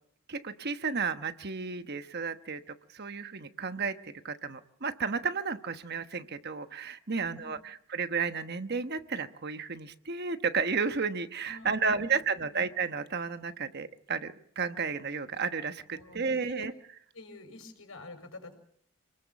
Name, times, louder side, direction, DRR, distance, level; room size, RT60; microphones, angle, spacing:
voice 1, 0.3-16.7, right 5 dB, 50° right, 9 dB, 1.1 m, -33 dB
voice 2, 7.1-7.7 11.4-12.2 15.9-16.7 17.1-18.5, left 2 dB, 70° left, 6 dB, 5.8 m, -48 dB
27.5 x 20.0 x 7.1 m, 0.66 s
head